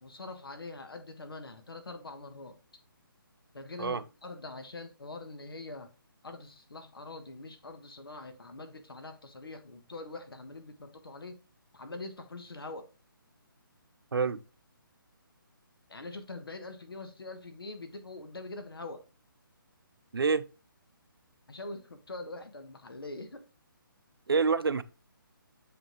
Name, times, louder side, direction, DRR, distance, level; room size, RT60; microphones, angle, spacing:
voice 1, 0.0-2.6 3.5-5.9 6.2-11.4 11.7-12.9 15.9-19.0 21.5-23.4, left 2 dB, 85° left, 1.4 m, -44 dB
voice 2, 20.1-20.5 24.3-24.8, right 5 dB, 85° right, 0.6 m, -27 dB
7.5 x 5.3 x 3.0 m
figure-of-eight pair, 155°, 12 cm